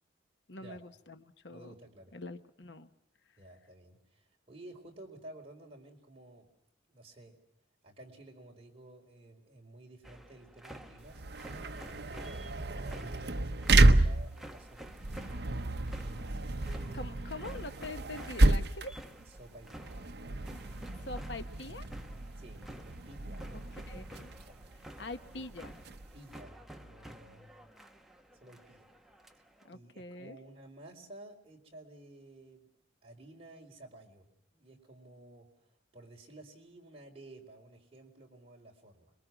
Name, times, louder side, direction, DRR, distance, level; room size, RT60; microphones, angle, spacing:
voice 1, 0.5-1.7 2.1-2.9 16.9-19.0 21.0-21.9 23.7-24.3 25.0-25.8 29.6-30.4, left 2 dB, 70° left, 10 dB, 1.2 m, -44 dB
voice 2, 1.5-2.1 3.4-6.5 6.9-7.4 7.8-11.2 11.7-15.3 16.0-17.1 19.4-20.2 22.4-24.0 24.3-24.8 25.4-25.5 26.1-27.5 28.4-28.9 29.7-32.7 33.0-34.3 34.5-35.5 35.9-39.1, right 1 dB, 30° right, 0 dB, 4.4 m, -53 dB
sound 1, 10.0-29.7, right 1 dB, ahead, 1.2 m, -51 dB
sound 2, 11.0-26.4, right 2 dB, 60° right, 0.9 m, -30 dB
27.0 x 22.5 x 6.1 m, 0.77 s
head